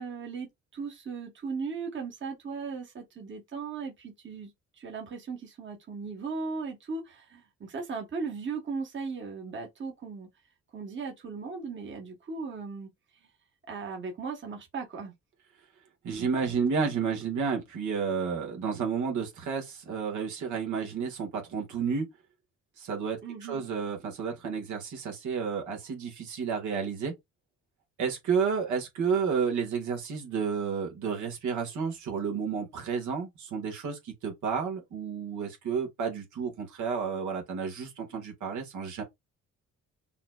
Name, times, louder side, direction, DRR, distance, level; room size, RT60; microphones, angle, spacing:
voice 1, 0.0-10.3 10.7-12.9 13.7-15.1 23.2-23.6, right 4 dB, 40° right, 1.4 m, -37 dB
voice 2, 16.0-22.1 22.8-27.1 28.0-39.0, right 6 dB, 75° right, 1.7 m, -31 dB
5.7 x 2.9 x 2.3 m
cardioid pair, 90°, 30 cm